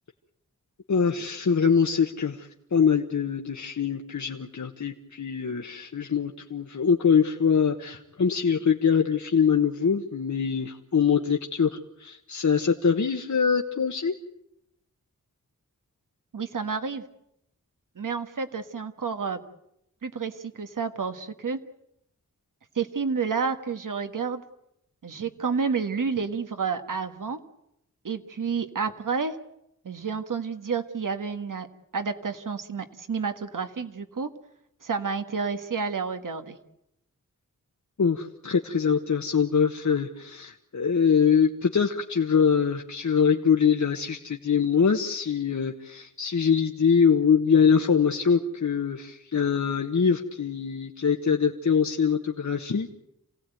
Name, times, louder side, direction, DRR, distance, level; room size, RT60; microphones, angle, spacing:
voice 1, 0.9-11.7 12.0-14.1 38.0-52.9, left 6 dB, 65° left, 3 dB, 1.3 m, -23 dB
voice 2, 16.3-17.0 18.0-19.4 20.0-21.6 22.8-24.4 25.0-27.4 28.0-29.4 29.8-31.7 31.9-34.3 34.8-36.6, right 5 dB, 80° right, 8 dB, 1.7 m, -30 dB
28.0 x 17.0 x 9.2 m, 0.80 s
wide cardioid pair, 95°, 31 cm